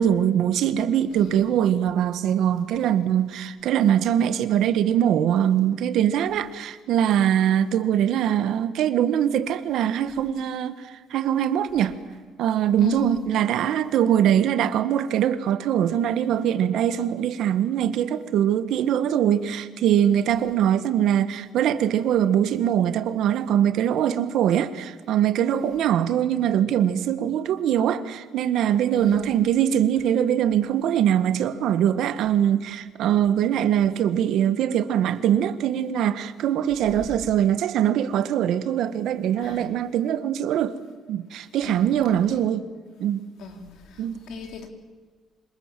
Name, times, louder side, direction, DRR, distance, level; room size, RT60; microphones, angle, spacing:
voice 1, 0.0-12.0 12.4-40.7 41.1-42.7 43.0-43.2 44.0-44.2, right 10 dB, 60° right, 1.6 m, -22 dB
voice 2, 28.9-29.3 39.4-39.6 41.6-41.9 42.3-42.4 43.4-43.6 44.3-44.7, left 7 dB, 65° left, 4.2 m, -37 dB
27.5 x 26.5 x 7.6 m
cardioid pair, 175°, 0 cm